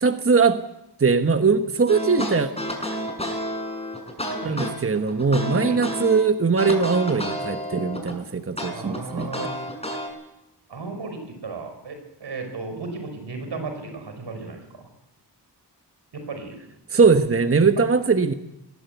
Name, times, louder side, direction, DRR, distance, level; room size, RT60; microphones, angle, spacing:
voice 1, 0.0-0.6 1.0-2.5 4.4-9.3 16.9-18.3, right 4 dB, 35° right, 9 dB, 1.2 m, -20 dB
sound 1, 1.9-6.2 6.6-8.2 8.6-10.1, equal, 15° left, 6.7 m, -30 dB
voice 2, 8.7-9.6 10.7-14.9 16.1-16.6, right 3 dB, 85° right, 6 dB, 5.2 m, -35 dB
20.0 x 16.5 x 8.1 m, 0.87 s
cardioid pair, 50°, 40 cm